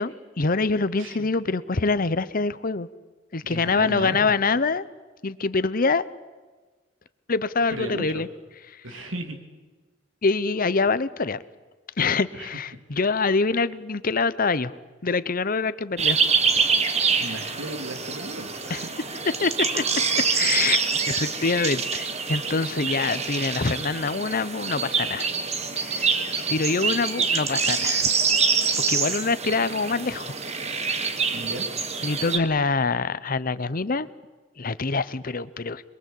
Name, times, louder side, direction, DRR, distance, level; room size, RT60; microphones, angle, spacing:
voice 1, 0.0-2.9 3.3-4.8 5.2-6.0 7.3-8.3 8.7-8.8 10.2-11.4 12.0-14.7 15.0-16.2 18.7-18.8 19.4-19.8 20.2-25.3 25.8-26.1 26.5-28.1 28.9-30.4 30.8-31.0 32.0-34.1 34.6-35.8, left 4 dB, 45° left, 16 dB, 0.9 m, -25 dB
voice 2, 3.4-4.3 7.7-8.3 8.8-9.4 12.3-12.5 17.2-18.9 22.9-23.0 29.0-29.1 31.3-31.7, right 1 dB, 90° right, 4 dB, 3.2 m, -35 dB
sound 1, 16.0-32.4, right 5 dB, 35° right, 1.8 m, -25 dB
27.0 x 21.5 x 8.4 m, 1.3 s
head